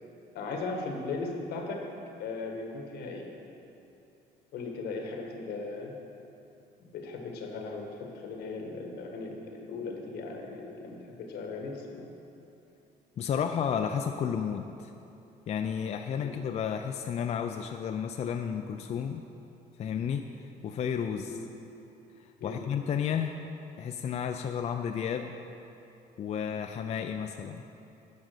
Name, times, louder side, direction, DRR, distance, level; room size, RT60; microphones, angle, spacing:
voice 1, 0.3-1.9 2.2-3.3 4.5-6.0 6.8-12.1 16.2-16.4 21.3-21.5 22.4-22.7, left 3 dB, 75° left, 2 dB, 1.4 m, -38 dB
voice 2, 13.2-14.9 15.5-19.2 19.8-21.4 22.4-23.4 23.8-25.3 26.2-27.6, left 7 dB, 40° left, 5 dB, 0.4 m, -32 dB
9.6 x 5.3 x 6.6 m, 2.9 s
cardioid pair, 110°, 17 cm